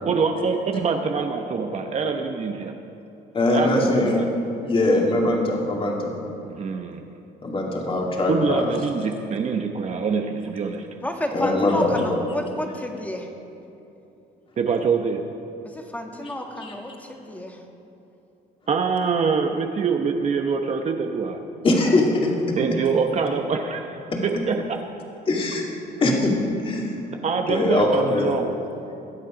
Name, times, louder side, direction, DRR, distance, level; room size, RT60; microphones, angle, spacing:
voice 1, 0.1-2.7 3.5-4.3 6.4-7.0 8.3-10.9 14.6-15.2 18.7-21.4 22.6-24.0 24.2-24.8 27.2-28.5, right 5 dB, 40° right, 4 dB, 0.9 m, -24 dB
voice 2, 3.3-4.2 4.7-6.1 7.4-8.7 11.3-12.2 16.6-16.7 21.6-22.6 24.1-24.2 25.3-25.6 26.0-26.3 26.6-26.9 27.5-28.4, left 2 dB, 30° left, -1 dB, 2.5 m, -22 dB
voice 3, 11.0-13.3 15.6-17.6, left 1 dB, 10° left, 2 dB, 1.7 m, -31 dB
21.5 x 8.4 x 5.1 m, 2.9 s
cardioid pair, 110°, 17 cm